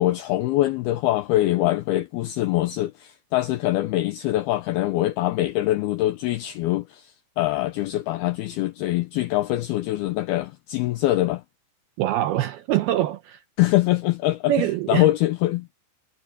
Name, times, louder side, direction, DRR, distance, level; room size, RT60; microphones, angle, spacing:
voice 1, 0.0-11.4 13.6-15.7, left 16 dB, 85° left, 2.2 m, -23 dB
voice 2, 12.0-13.4 14.5-15.1, right 13 dB, 80° right, 2.2 m, -24 dB
omnidirectional pair, 5.3 m